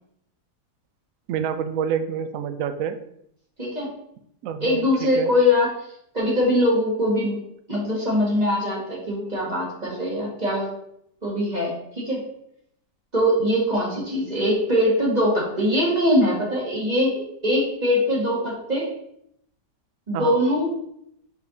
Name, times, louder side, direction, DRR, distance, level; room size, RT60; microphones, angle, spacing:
voice 1, 1.3-3.0 4.4-4.9 5.2-5.3 20.1-20.3, right 8 dB, 70° right, 10 dB, 0.8 m, -27 dB
voice 2, 3.6-3.9 4.6-5.7 6.1-7.4 7.7-10.7 11.2-12.2 13.1-18.9 20.1-20.7, left 1 dB, 25° right, -4 dB, 1.8 m, -22 dB
5.1 x 5.0 x 3.9 m, 0.73 s
omnidirectional pair, 1.8 m